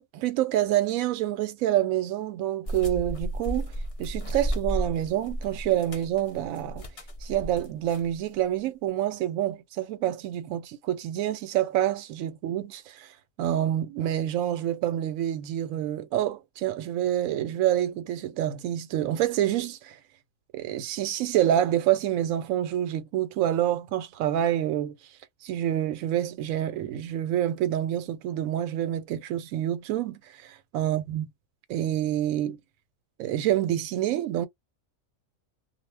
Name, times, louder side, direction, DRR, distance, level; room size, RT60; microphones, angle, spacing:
voice 1, 0.0-3.7 4.0-6.8 7.2-13.1 13.4-20.0 20.5-24.9 25.4-31.3 31.7-32.6 33.2-34.5, right 12 dB, 80° right, 1.0 m, -27 dB
sound 1, 2.7-8.2, right 1 dB, 45° left, 0.4 m, -33 dB
2.3 x 2.1 x 3.3 m
omnidirectional pair, 1.4 m